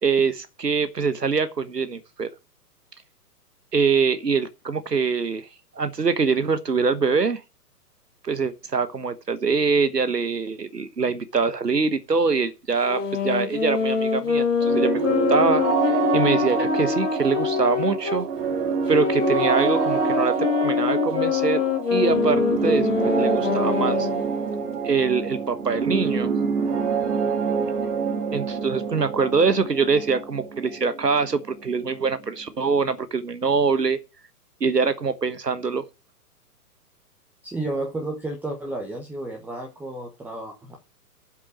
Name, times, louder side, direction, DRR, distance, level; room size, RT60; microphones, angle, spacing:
voice 1, 0.0-2.3 3.7-5.5 5.8-7.4 8.2-15.0 15.3-15.6 16.1-18.3 18.9-21.6 21.9-24.1 24.8-26.3 28.3-34.0 34.6-35.8, right 5 dB, 80° right, 1.4 m, -24 dB
sound 1, 12.8-18.3 18.9-24.2, left 7 dB, 50° left, 2.8 m, -25 dB
sound 2, 14.6-32.2, right 6 dB, 45° right, 2.8 m, -26 dB
voice 2, 37.4-40.8, right 2 dB, 5° right, 0.9 m, -32 dB
7.9 x 7.5 x 7.5 m
figure-of-eight pair, 120°, 48 cm